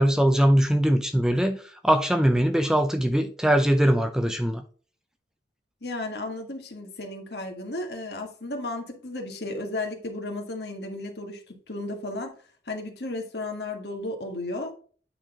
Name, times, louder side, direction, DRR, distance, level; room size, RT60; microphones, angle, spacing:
voice 1, 0.0-4.6, equal, 5° right, 0.5 m, -21 dB
voice 2, 5.8-12.3 12.7-14.7, left 2 dB, 70° left, 1.7 m, -34 dB
8.9 x 4.2 x 3.7 m
head